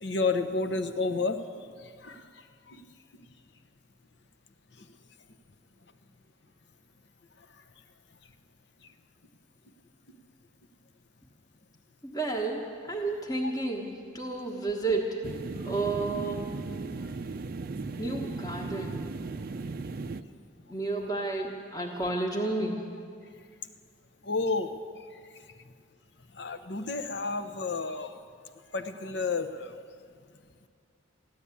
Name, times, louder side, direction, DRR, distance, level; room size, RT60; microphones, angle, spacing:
voice 1, 0.0-1.4 2.0-2.2 24.2-24.7 26.4-28.1 28.7-29.7, left 3 dB, 60° left, 10 dB, 0.8 m, -30 dB
voice 2, 12.0-15.2 15.6-16.5 18.0-19.2 20.7-22.8, right 2 dB, 20° left, 0 dB, 1.2 m, -31 dB
sound 1, 15.2-20.2, right 3 dB, 45° right, 0.4 m, -36 dB
15.0 x 11.5 x 8.3 m, 2.2 s
head